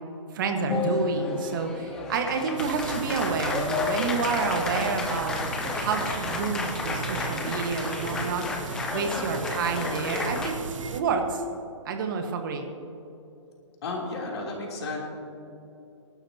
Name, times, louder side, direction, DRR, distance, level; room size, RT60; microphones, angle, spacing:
voice 1, 0.3-5.4 5.8-8.5 8.9-10.6 10.9-11.4 11.8-12.7, right 5 dB, 40° right, 4 dB, 1.5 m, -29 dB
Applause, 0.7-10.5, left 4 dB, 5° left, 0.3 m, -31 dB
sound 1, 2.6-11.0, right 5 dB, 80° right, 1.0 m, -37 dB
voice 2, 13.8-15.0, left 3 dB, 55° left, -2 dB, 3.3 m, -33 dB
22.0 x 12.0 x 2.9 m, 2.8 s
hypercardioid pair, 165°, 16 cm